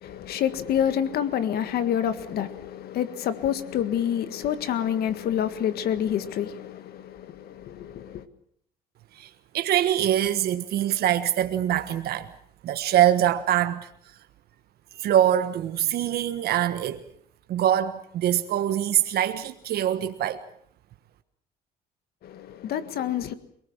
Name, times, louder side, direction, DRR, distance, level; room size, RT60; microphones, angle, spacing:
voice 1, 0.0-8.3 22.2-23.3, left 9 dB, 65° left, 1.7 m, -28 dB
voice 2, 9.1-12.3 12.6-13.9 15.0-17.0 17.5-20.4, right 11 dB, 70° right, 1.4 m, -24 dB
27.0 x 19.5 x 7.4 m
cardioid pair, 110°, 17 cm